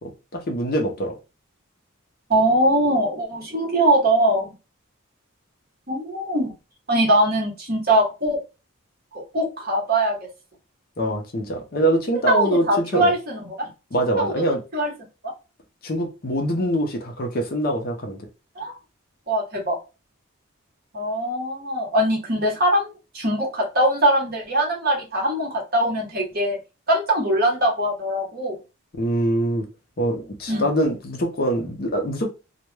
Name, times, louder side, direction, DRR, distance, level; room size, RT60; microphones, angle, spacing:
voice 1, 0.3-1.1 11.0-13.1 13.9-14.6 15.8-18.3 28.9-29.7 30.0-32.3, right 1 dB, 45° left, 0.5 m, -24 dB
voice 2, 2.3-4.5 5.9-6.5 6.9-8.4 9.1-10.3 12.3-13.7 14.2-14.3 14.7-14.9 18.6-18.7 19.3-19.8 20.9-26.6 26.9-28.6 30.5-30.7, right 1 dB, 45° right, 0.9 m, -22 dB
2.2 x 2.1 x 3.0 m
head